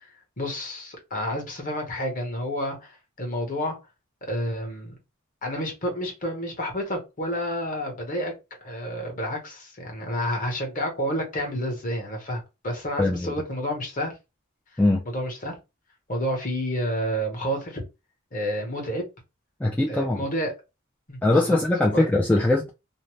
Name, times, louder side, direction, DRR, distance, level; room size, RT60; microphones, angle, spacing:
voice 1, 0.4-3.8 4.2-4.9 5.4-8.3 8.6-14.2 15.1-15.6 16.1-17.8 18.3-19.0 19.9-20.5 21.1-21.6 21.9-22.1, equal, 40° left, 1.0 m, -30 dB
voice 2, 13.0-13.3 14.8-15.0 19.6-20.2 21.2-22.7, left 2 dB, 5° left, 0.3 m, -21 dB
2.6 x 2.1 x 3.0 m
head